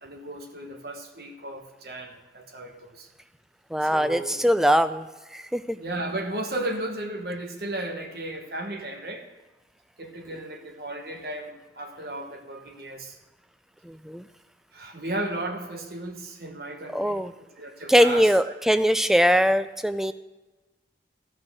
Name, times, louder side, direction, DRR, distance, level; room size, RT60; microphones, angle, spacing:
voice 1, 0.0-3.1 3.8-4.4 5.7-9.2 10.0-13.2 14.7-17.2 17.6-18.3 18.7-18.8, right 1 dB, 60° right, 4 dB, 1.1 m, -35 dB
voice 2, 3.7-5.8 13.8-14.2 16.9-17.3 17.9-20.1, equal, ahead, 12 dB, 0.3 m, -22 dB
13.5 x 6.1 x 6.4 m, 1.2 s
head